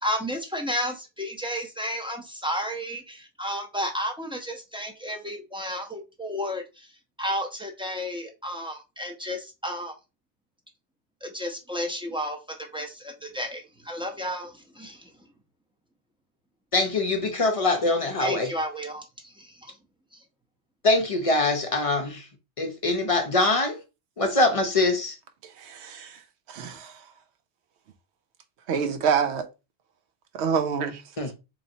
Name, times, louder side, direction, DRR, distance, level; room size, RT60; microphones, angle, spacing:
voice 1, 0.0-6.9 7.2-9.9 11.2-15.1 18.2-19.7, equal, 5° right, 0.5 m, -32 dB
voice 2, 16.7-18.5 20.8-22.3 22.6-23.8 24.2-25.2 31.2-31.3, left 2 dB, 35° left, 0.7 m, -23 dB
voice 3, 25.6-26.2 26.5-26.9 28.7-29.5 30.3-31.0, right 6 dB, 80° right, 0.9 m, -26 dB
4.0 x 3.1 x 2.6 m
omnidirectional pair, 1.1 m